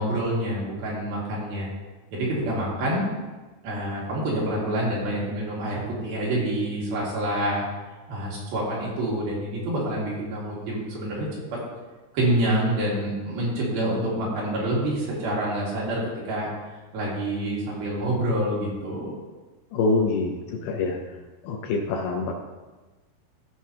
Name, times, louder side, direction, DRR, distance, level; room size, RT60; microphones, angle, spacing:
voice 1, 0.0-1.7 2.1-3.1 3.6-7.6 8.1-11.4 12.1-16.0 16.3-16.5 16.9-19.1, right 1 dB, 65° right, -5 dB, 3.8 m, -27 dB
voice 2, 19.7-20.4 20.6-21.0 21.4-22.3, left 3 dB, 75° left, 1 dB, 2.4 m, -25 dB
15.0 x 6.0 x 2.8 m, 1.2 s
omnidirectional pair, 4.9 m